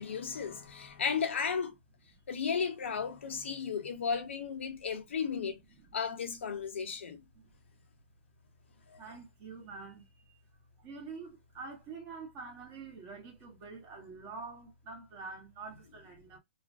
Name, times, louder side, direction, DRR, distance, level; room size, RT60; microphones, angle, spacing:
voice 1, 0.0-1.7 2.3-5.6 5.9-7.2 8.9-9.0, left 6 dB, 85° left, 0.8 m, -34 dB
voice 2, 9.0-10.4 10.8-16.4, right 4 dB, 30° right, 0.8 m, -46 dB
2.5 x 2.1 x 2.4 m
hypercardioid pair, 155°, 6 cm